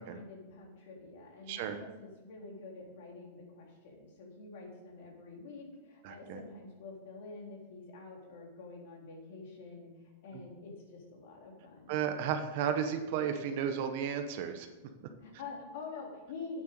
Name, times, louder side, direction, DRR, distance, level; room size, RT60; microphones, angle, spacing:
voice 1, 0.0-11.9 15.2-16.6, left 3 dB, 55° left, -1 dB, 3.5 m, -47 dB
voice 2, 6.0-6.4 11.9-14.7 15.0-15.1, right 8 dB, 45° right, 7 dB, 1.0 m, -33 dB
8.9 x 7.9 x 6.7 m, 1.1 s
supercardioid pair, 170°, 0 cm